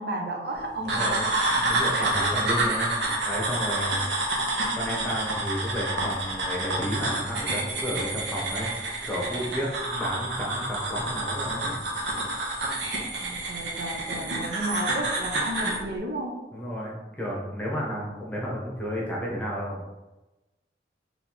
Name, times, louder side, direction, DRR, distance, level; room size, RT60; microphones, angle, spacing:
voice 1, 0.0-1.3 1.9-2.3 3.8-3.9 13.2-16.4, right 1 dB, 60° right, 1 dB, 0.6 m, -33 dB
voice 2, 0.8-1.2 1.5-2.9 3.2-4.0 4.7-8.7 9.0-11.8 16.5-19.8, equal, 10° left, -4 dB, 1.0 m, -32 dB
sound 1, 0.9-15.8, right 2 dB, 85° right, 0.9 m, -28 dB
4.1 x 3.3 x 3.0 m, 1.1 s
head